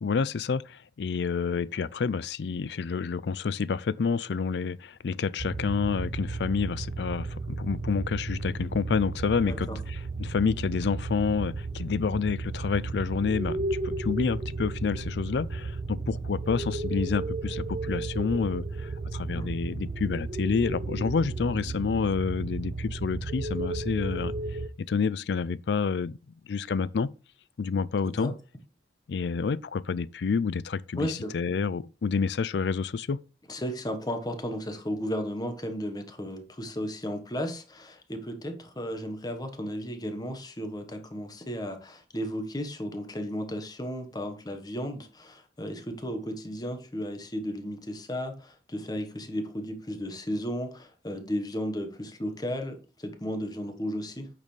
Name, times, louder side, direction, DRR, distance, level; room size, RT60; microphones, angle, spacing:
voice 1, 0.0-24.3 24.8-26.2 26.5-27.1 27.6-28.3 29.1-33.2, left 5 dB, 70° left, 0.4 m, -29 dB
sound 1, 5.4-24.7, right 3 dB, 35° right, 0.4 m, -34 dB
voice 2, 9.4-9.8 19.3-19.5 28.2-28.3 30.9-31.3 33.5-54.3, equal, 20° left, 1.2 m, -34 dB
8.6 x 6.6 x 3.2 m
head